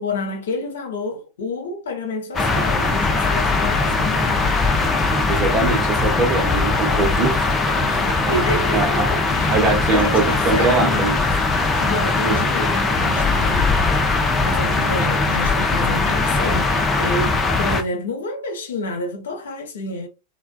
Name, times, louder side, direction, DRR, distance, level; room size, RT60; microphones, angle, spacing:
voice 1, 0.0-4.6 7.8-11.2 11.8-13.7 14.4-20.1, left 2 dB, 65° left, 0.8 m, -29 dB
sound 1, 2.3-17.8, left 3 dB, 15° left, 0.6 m, -20 dB
voice 2, 5.3-7.5 8.1-8.4 8.7-9.2 9.5-11.2 12.2-12.4, right 4 dB, 30° right, 0.9 m, -22 dB
3.3 x 2.2 x 2.2 m
figure-of-eight pair, 90°, 0 cm